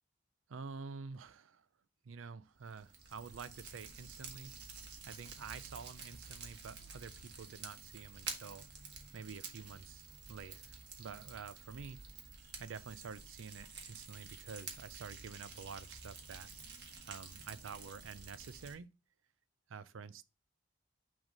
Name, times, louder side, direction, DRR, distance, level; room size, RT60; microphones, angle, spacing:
voice 1, 0.5-1.7 2.0-4.5 5.0-8.7 9.1-12.0 12.6-16.5 17.1-18.9 19.7-20.2, right 5 dB, 90° right, 0.5 m, -48 dB
Fire, 2.6-18.7, right 5 dB, 60° right, 1.4 m, -50 dB
6.2 x 3.5 x 5.3 m
head